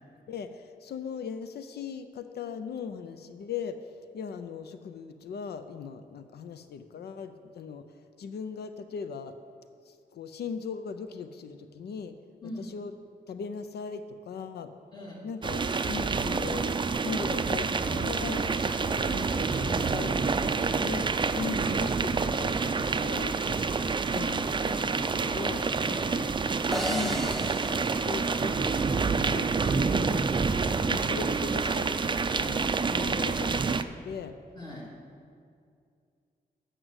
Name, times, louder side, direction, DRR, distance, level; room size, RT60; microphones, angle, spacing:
voice 1, 0.3-7.9 8.2-9.4 9.9-12.1 12.6-12.9 13.3-14.7 15.2-16.8 17.0-23.6 24.1-25.6 26.9-30.3 30.9-32.0 32.3-32.6 32.9-33.7 34.0-34.3, left 6 dB, 90° left, 9 dB, 0.5 m, -39 dB
voice 2, 14.9-15.3 21.3-21.5 25.8-26.3 30.6-30.9 34.6-35.0, left 1 dB, 25° left, -4 dB, 2.5 m, -41 dB
sound 1, 15.4-33.8, right 4 dB, 30° right, 0.4 m, -28 dB
sound 2, 26.7-29.1, equal, ahead, 0.9 m, -36 dB
7.8 x 6.2 x 7.9 m, 2.3 s
cardioid pair, 80°, 16 cm